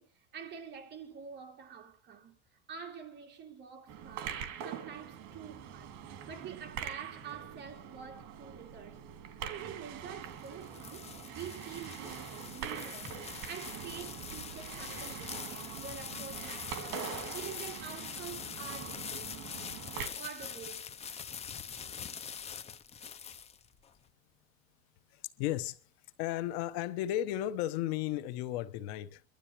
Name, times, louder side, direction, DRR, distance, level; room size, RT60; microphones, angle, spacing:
voice 1, 0.0-2.4 2.7-9.0 9.3-19.4 20.2-20.9, right 7 dB, 35° right, 2.6 m, -47 dB
sound 1, 3.9-20.1, right 8 dB, 65° right, 2.6 m, -44 dB
sound 2, 10.1-23.9, left 7 dB, 20° left, 0.6 m, -44 dB
voice 2, 25.1-25.8 26.2-29.2, left 13 dB, 75° left, 1.1 m, -34 dB
24.0 x 12.0 x 3.1 m
cardioid pair, 145°, 31 cm